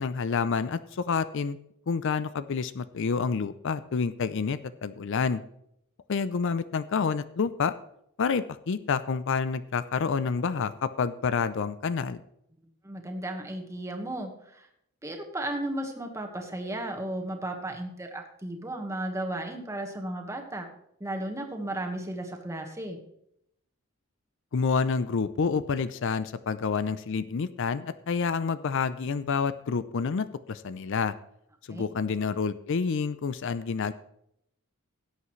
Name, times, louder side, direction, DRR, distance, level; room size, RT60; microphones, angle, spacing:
voice 1, 0.0-1.6 1.9-5.4 6.1-7.7 8.2-12.2 24.5-31.1 31.7-33.9, left 5 dB, 60° left, 14 dB, 0.5 m, -28 dB
voice 2, 12.8-14.7 15.0-20.7 21.0-23.0 31.7-31.8, right 1 dB, 15° right, 3 dB, 1.4 m, -34 dB
17.5 x 8.3 x 3.1 m, 0.75 s
head